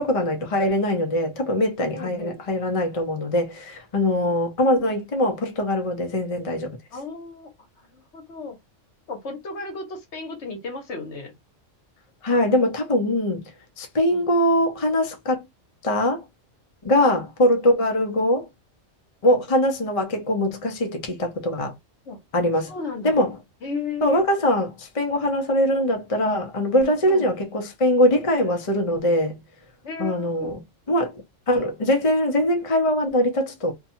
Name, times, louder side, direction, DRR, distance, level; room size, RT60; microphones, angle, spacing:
voice 1, 0.0-6.8 12.2-13.4 13.8-15.5 15.8-16.2 16.8-18.5 19.2-21.7 22.3-22.7 23.0-23.3 24.0-29.4 30.0-30.6 30.9-31.1 31.5-33.7, left 1 dB, 35° left, 0.6 m, -22 dB
voice 2, 1.9-2.4 6.9-7.5 7.9-8.6 9.1-11.3 14.1-14.3 17.0-17.2 19.2-19.4 22.1-22.2 22.6-23.2 23.6-24.2 27.1-27.3 29.8-30.5, left 4 dB, 65° left, 1.2 m, -34 dB
2.7 x 2.3 x 2.7 m
omnidirectional pair, 1.3 m